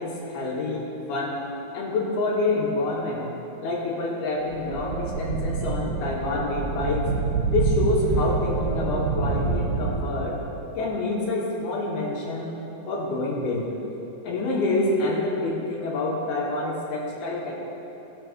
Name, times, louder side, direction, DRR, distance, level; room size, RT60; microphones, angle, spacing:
voice 1, 0.0-1.5 1.7-3.3 3.6-7.1 7.5-10.4 10.8-12.6 12.9-13.7 14.2-17.5, left 2 dB, 85° left, -4 dB, 3.8 m, -27 dB
sound 1, 4.5-10.6, right 4 dB, 75° right, 2.6 m, -27 dB
19.0 x 6.4 x 4.5 m, 3.0 s
omnidirectional pair, 4.3 m